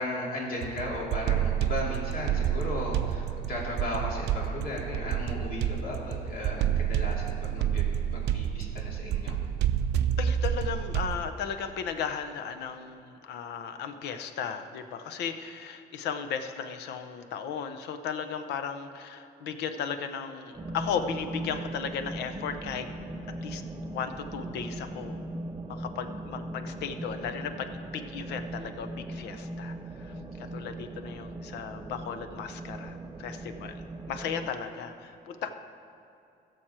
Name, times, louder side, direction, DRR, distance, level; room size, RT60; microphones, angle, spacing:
voice 1, 0.0-7.8 8.1-9.4, left 1 dB, 60° left, -3 dB, 2.7 m, -35 dB
sound 1, 0.6-11.3, right 10 dB, 85° right, 0.5 m, -29 dB
voice 2, 10.2-22.9 23.4-23.6 23.9-25.2 25.7-33.7 34.1-35.5, left 7 dB, 90° left, 8 dB, 0.7 m, -35 dB
sound 2, 20.5-34.5, right 1 dB, 20° right, 0.5 m, -39 dB
15.5 x 6.4 x 4.4 m, 2.6 s
cardioid pair, 105°, 17 cm